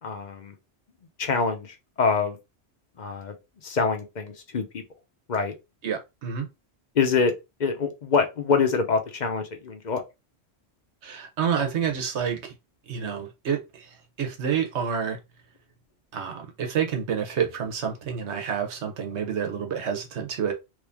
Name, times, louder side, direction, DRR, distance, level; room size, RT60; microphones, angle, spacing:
voice 1, 0.0-0.5 1.2-2.4 3.0-3.3 3.6-4.8 5.3-5.5 6.9-7.3 7.6-10.0, left 5 dB, 45° left, 0.8 m, -25 dB
voice 2, 5.8-6.5 11.0-12.5 12.9-15.2 16.1-20.5, right 7 dB, 80° right, 1.1 m, -28 dB
3.2 x 2.6 x 3.4 m
omnidirectional pair, 1.1 m